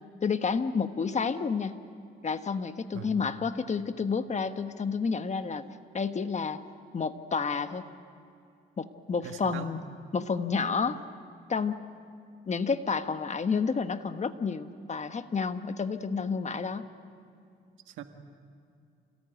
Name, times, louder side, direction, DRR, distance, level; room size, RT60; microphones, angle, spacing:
voice 1, 0.2-1.7 2.2-5.6 5.9-6.6 6.9-7.8 8.8-9.8 10.1-11.0 11.5-11.8 12.5-16.9, left 5 dB, 35° left, 9 dB, 1.3 m, -30 dB
voice 2, 2.9-3.3 9.2-9.7 17.9-18.0, right 8 dB, 90° right, 6 dB, 1.8 m, -41 dB
28.0 x 18.0 x 9.2 m, 2.5 s
cardioid pair, 90°, 20 cm